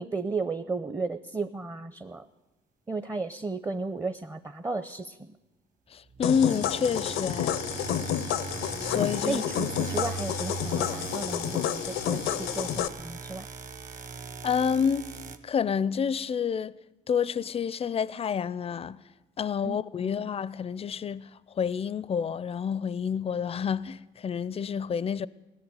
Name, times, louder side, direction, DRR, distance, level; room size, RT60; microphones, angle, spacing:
voice 1, 0.0-2.3 2.9-5.4 9.2-13.5 19.6-20.3, right 3 dB, 15° right, 0.6 m, -34 dB
voice 2, 5.9-7.6 8.8-9.4 14.4-15.1 15.4-16.7 17.1-19.0 19.4-21.3 21.6-25.3, left 7 dB, 30° left, 0.4 m, -28 dB
sound 1, 6.1-15.4, right 5 dB, 40° right, 1.1 m, -39 dB
sound 2, 6.2-12.9, left 10 dB, 85° left, 0.6 m, -30 dB
17.5 x 6.9 x 9.1 m
cardioid pair, 90°, 20 cm